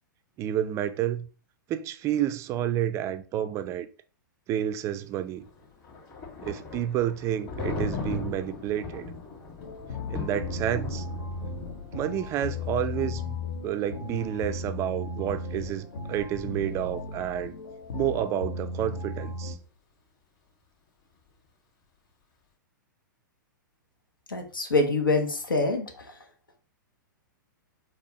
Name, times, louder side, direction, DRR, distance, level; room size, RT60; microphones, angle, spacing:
voice 1, 0.4-1.3 1.7-3.9 4.5-5.5 6.4-9.1 10.1-11.1 11.9-13.4 13.6-17.5 17.9-19.6, right 11 dB, 25° right, 0.3 m, -30 dB
Thunder, 5.4-17.2, left 3 dB, 35° left, 2.3 m, -39 dB
sound 1, 9.6-19.6, left 2 dB, 60° left, 0.7 m, -36 dB
voice 2, 24.3-25.9, left 3 dB, 85° left, 0.9 m, -25 dB
4.3 x 2.9 x 3.1 m
figure-of-eight pair, 105°, 11 cm